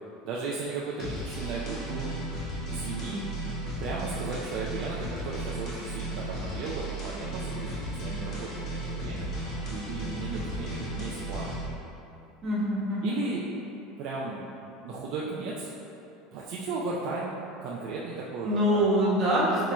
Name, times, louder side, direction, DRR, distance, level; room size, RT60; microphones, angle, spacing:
voice 1, 0.2-2.1 2.7-3.3 3.8-9.3 9.7-11.6 13.0-13.5 14.0-14.4 14.8-15.7 16.3-18.9, right 3 dB, 60° right, -4 dB, 0.4 m, -35 dB
sound 1, 1.0-11.7, right 1 dB, 50° left, 1.0 m, -35 dB
voice 2, 12.4-13.2 18.4-19.7, equal, 40° right, -6 dB, 1.1 m, -25 dB
6.0 x 3.0 x 2.2 m, 2.8 s
hypercardioid pair, 90°, 0 cm